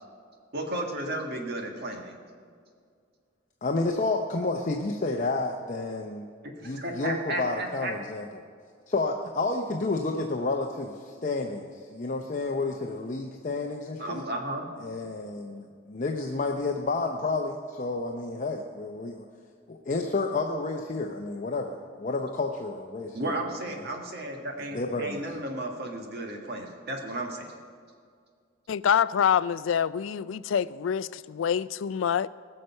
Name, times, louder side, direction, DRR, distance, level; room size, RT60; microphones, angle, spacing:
voice 1, 0.5-2.2 6.4-7.9 14.0-14.7 23.1-27.5, right 1 dB, 55° right, 1.7 m, -34 dB
voice 2, 3.6-6.3 6.6-8.4 8.9-14.2 14.8-19.3 19.7-23.3 24.7-25.3, left 3 dB, 40° left, 0.7 m, -30 dB
voice 3, 28.7-32.3, left 8 dB, 80° left, 0.4 m, -26 dB
20.0 x 6.6 x 5.5 m
head